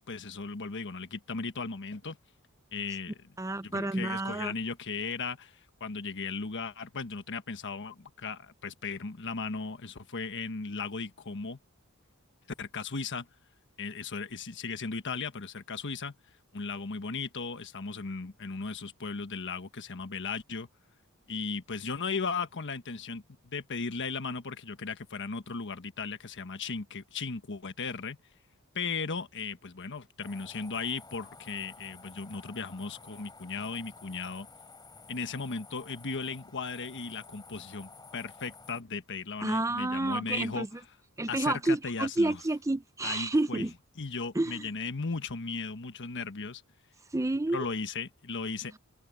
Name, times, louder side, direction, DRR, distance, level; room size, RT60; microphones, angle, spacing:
voice 1, 0.0-2.2 2.7-3.3 3.6-11.6 12.6-13.3 13.8-16.1 16.5-20.7 21.3-28.2 28.7-34.5 35.1-40.7 41.3-42.4 43.0-43.7 44.0-46.6 47.5-48.8, left 4 dB, 55° left, 1.3 m, -36 dB
voice 2, 3.4-4.5 39.4-40.7 41.2-43.7 44.3-44.7 47.1-47.7, right 2 dB, 15° right, 0.5 m, -29 dB
sound 1, 30.2-38.8, left 3 dB, 20° left, 4.7 m, -52 dB
head